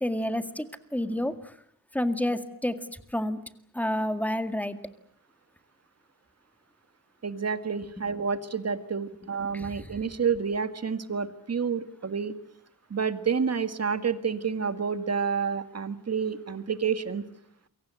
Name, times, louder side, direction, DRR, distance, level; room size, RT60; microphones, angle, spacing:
voice 1, 0.0-0.7 0.9-1.3 1.9-2.8 3.1-3.4 3.7-4.8 9.5-9.9, left 1 dB, 5° left, 9 dB, 2.0 m, -29 dB
voice 2, 7.2-12.3 12.9-17.2, right 6 dB, 45° right, 10 dB, 1.9 m, -29 dB
28.0 x 23.5 x 7.6 m, 0.67 s
wide cardioid pair, 120°, 37 cm